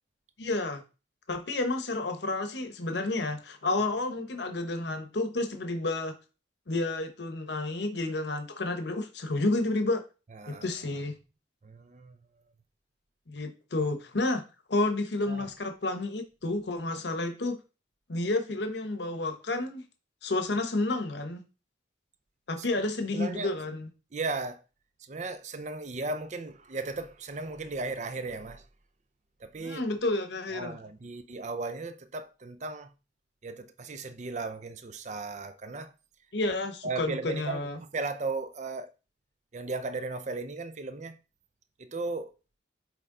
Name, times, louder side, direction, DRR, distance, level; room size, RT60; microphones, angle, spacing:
voice 1, 0.4-0.8 1.3-6.1 6.7-10.0 10.5-11.1 13.3-14.4 14.7-17.6 18.1-19.8 20.2-21.4 22.5-23.9 29.6-30.8 36.3-37.8, left 2 dB, 65° left, 0.9 m, -30 dB
voice 2, 10.3-10.7 11.6-12.2 15.3-15.5 22.6-22.7 23.1-23.6 24.1-24.6 25.0-28.7 29.4-29.8 30.5-32.9 33.4-35.9 36.8-38.9 39.5-41.2 41.8-42.3, right 3 dB, 40° right, 0.5 m, -36 dB
8.2 x 3.4 x 3.8 m
head